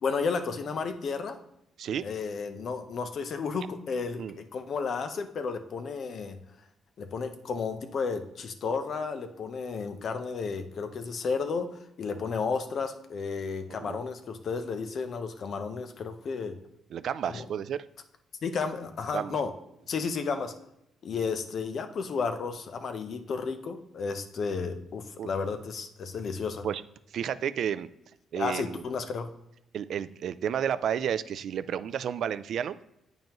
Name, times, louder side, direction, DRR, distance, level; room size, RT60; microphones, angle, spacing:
voice 1, 0.0-1.4 2.0-6.4 7.0-16.6 17.3-17.4 18.4-19.5 19.9-20.5 21.0-26.7 28.4-29.3, left 5 dB, 55° left, 8 dB, 0.7 m, -32 dB
voice 2, 16.9-17.8 19.1-19.4 25.2-25.3 26.6-26.8 27.1-27.9 28.3-28.8 29.7-32.8, right 9 dB, 65° right, 15 dB, 0.3 m, -31 dB
9.0 x 5.3 x 3.0 m, 0.82 s
cardioid pair, 90°, 0 cm